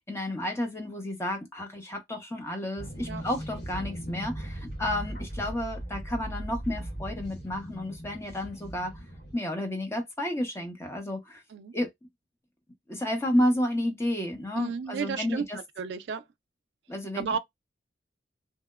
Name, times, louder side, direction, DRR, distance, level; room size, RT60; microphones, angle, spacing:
voice 1, 0.1-8.9 9.3-11.4 11.7-11.9 12.9-15.6 16.9-17.2, left 1 dB, 15° left, 0.7 m, -31 dB
sound 1, 2.8-9.3, right 1 dB, 65° left, 1.5 m, -38 dB
voice 2, 14.5-15.4 15.8-16.2 17.2-17.4, right 6 dB, 75° right, 0.3 m, -32 dB
2.8 x 2.1 x 2.2 m
head